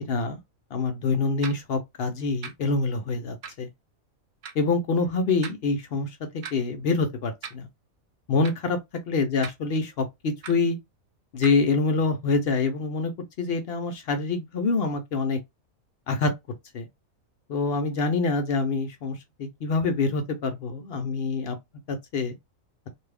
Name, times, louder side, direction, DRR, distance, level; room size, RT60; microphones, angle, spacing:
voice 1, 0.1-0.4 0.7-3.7 4.6-6.1 6.5-7.6 8.3-8.8 9.1-10.8 11.3-13.1 13.4-15.4 16.1-16.3 16.7-16.8 17.5-21.6 21.9-22.3, left 3 dB, 60° left, 0.7 m, -26 dB
sound 1, 1.4-1.6 2.4-2.5 3.4-3.6 4.4-4.5 5.4-5.6 6.4-6.5 7.4-7.6 8.4-8.5 9.4-9.5 10.4-10.5 11.4-11.6, right 6 dB, 65° right, 0.5 m, -38 dB
2.6 x 2.3 x 3.3 m
omnidirectional pair, 1.4 m